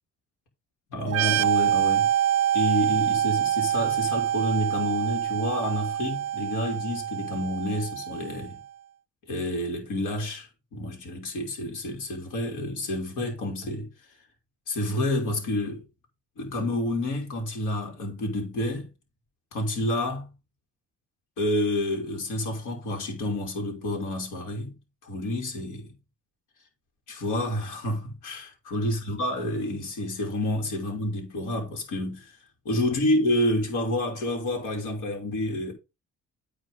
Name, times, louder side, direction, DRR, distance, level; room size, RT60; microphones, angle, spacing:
voice 1, 0.9-2.1 2.5-8.6 9.3-13.9 14.7-15.8 16.4-18.9 19.5-20.3 21.4-24.7 25.0-25.9 27.1-32.4 32.6-35.7, left 1 dB, 90° left, 2.9 m, -29 dB
sound 1, 1.1-8.6, right 11 dB, 55° right, 0.4 m, -26 dB
9.6 x 4.0 x 5.4 m
cardioid pair, 90°, 30 cm